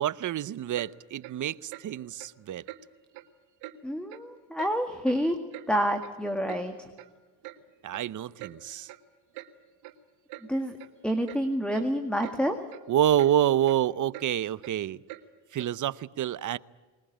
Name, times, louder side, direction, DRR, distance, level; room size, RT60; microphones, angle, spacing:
voice 1, 0.0-2.6 7.8-8.9 12.9-15.0 15.5-16.6, right 11 dB, 40° right, 0.7 m, -27 dB
Clock, 0.7-0.9 1.2-1.4 1.7-1.9 2.2-2.3 2.7-2.8 3.1-3.3 3.6-3.8 4.1-4.3 4.6-4.7 5.0-5.7 6.0-6.1 6.5-6.6 7.0-7.1 7.4-7.6 7.9-8.1 8.4-8.5 8.9-9.0 9.3-9.5 9.8-10.0 10.3-10.5 10.8-10.9 11.3-11.4 11.7-11.9 12.2-12.4 12.7-12.8 13.2-13.3 13.6-13.8 14.1-14.3 14.6-14.7 15.1-15.2 15.6-15.7, right 16 dB, 85° right, 1.9 m, -44 dB
voice 2, 3.8-5.4 5.7-6.9 10.5-10.8 11.0-12.6, equal, ahead, 1.9 m, -28 dB
21.0 x 20.0 x 8.8 m
supercardioid pair, 85°, 46 cm